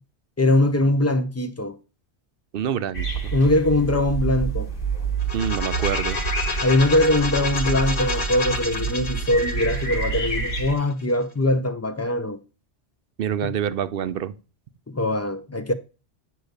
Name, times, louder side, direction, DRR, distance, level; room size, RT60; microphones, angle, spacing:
voice 1, 0.4-1.8 3.3-4.7 6.6-12.4 13.4-13.5 14.9-15.7, left 1 dB, 20° left, 0.4 m, -22 dB
voice 2, 2.5-3.3 5.3-6.2 13.2-14.3, right 9 dB, 65° right, 0.7 m, -27 dB
sound 1, 2.9-10.8, right 5 dB, 55° left, 1.5 m, -28 dB
sound 2, 5.2-11.0, left 3 dB, 85° left, 1.7 m, -30 dB
9.2 x 3.2 x 6.5 m
omnidirectional pair, 1.1 m